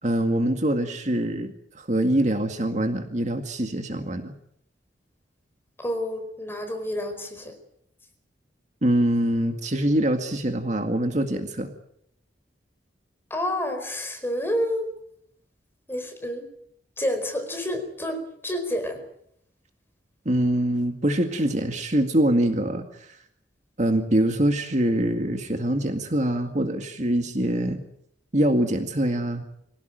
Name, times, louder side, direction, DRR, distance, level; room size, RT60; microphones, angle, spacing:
voice 1, 0.0-4.3 8.8-11.7 20.3-23.2 23.8-27.8 28.3-29.4, right 1 dB, 40° right, 5 dB, 2.1 m, -24 dB
voice 2, 5.8-7.6 13.3-14.9 15.9-16.5 17.0-19.0, equal, 15° left, 6 dB, 4.7 m, -29 dB
24.5 x 17.5 x 9.1 m, 0.73 s
head